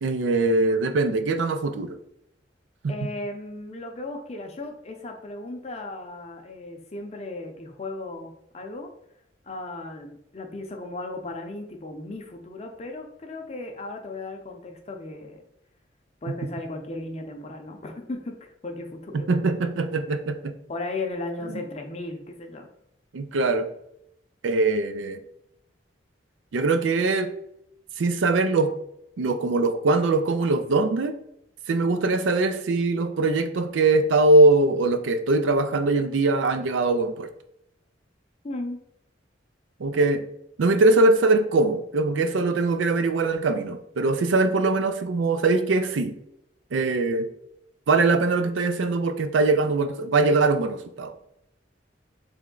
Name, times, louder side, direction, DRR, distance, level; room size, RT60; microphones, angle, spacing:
voice 1, 0.0-2.0 2.8-2.9 19.1-20.5 23.1-23.7 24.4-25.2 26.5-27.3 28.0-28.7 29.2-31.2 31.7-37.3 39.8-40.3 40.6-46.2 46.7-47.3 47.9-51.1, right 3 dB, 80° right, 9 dB, 0.4 m, -22 dB
voice 2, 2.9-8.9 9.4-15.4 16.2-19.3 20.7-22.7 38.4-38.8 40.0-40.1, left 2 dB, 35° left, 4 dB, 0.6 m, -36 dB
3.5 x 3.1 x 3.7 m, 0.77 s
head